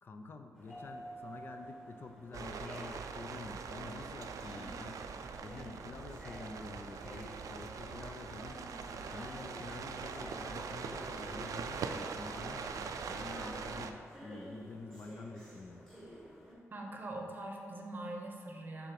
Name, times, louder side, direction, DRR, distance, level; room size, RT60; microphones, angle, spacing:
voice 1, 0.0-5.1 5.4-8.7 9.1-15.9, left 3 dB, 40° left, 5 dB, 0.4 m, -48 dB
sound 1, 0.5-16.5, equal, 5° left, 1.4 m, -51 dB
sound 2, 2.3-13.9, right 5 dB, 85° right, 0.4 m, -42 dB
voice 2, 16.7-18.9, right 2 dB, 35° right, 1 dB, 0.8 m, -42 dB
6.7 x 3.6 x 5.9 m, 2.3 s
wide cardioid pair, 175°, 6 cm